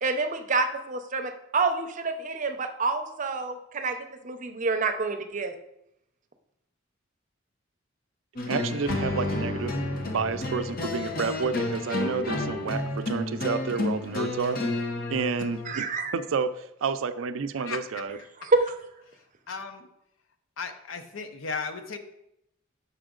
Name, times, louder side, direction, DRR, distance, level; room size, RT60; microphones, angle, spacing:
voice 1, 0.0-4.0 4.2-5.6 15.7-16.1 18.4-18.7, right 3 dB, 40° right, 6 dB, 0.6 m, -27 dB
sound 1, 8.4-15.8, left 2 dB, 50° left, 0.8 m, -31 dB
voice 2, 8.5-9.7 10.0-14.6 15.1-15.9 16.1-18.2, right 5 dB, 80° right, 11 dB, 0.4 m, -30 dB
voice 3, 17.6-18.1 18.4-18.5 19.1-19.9 20.6-22.0, left 4 dB, 80° left, 8 dB, 0.7 m, -36 dB
7.0 x 5.6 x 3.8 m, 0.82 s
head